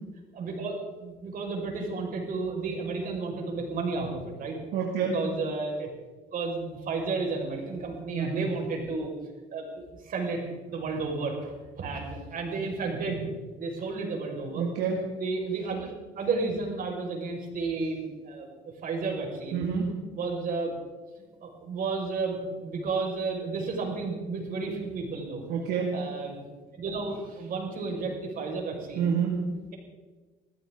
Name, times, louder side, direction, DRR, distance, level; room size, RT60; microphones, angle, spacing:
voice 1, 0.3-4.6 5.0-5.9 6.3-9.1 9.5-10.4 10.7-13.3 13.6-14.6 15.2-18.5 18.8-19.6 20.1-20.7 21.4-25.4 25.9-26.4 26.8-29.1, right 4 dB, 55° right, 0 dB, 5.3 m, -32 dB
voice 2, 4.7-5.2 8.1-8.5 14.6-15.0 19.5-19.9 25.5-25.9 29.0-29.5, right 6 dB, 80° right, -1 dB, 2.1 m, -28 dB
21.0 x 14.5 x 3.8 m, 1.3 s
cardioid pair, 110°, 17 cm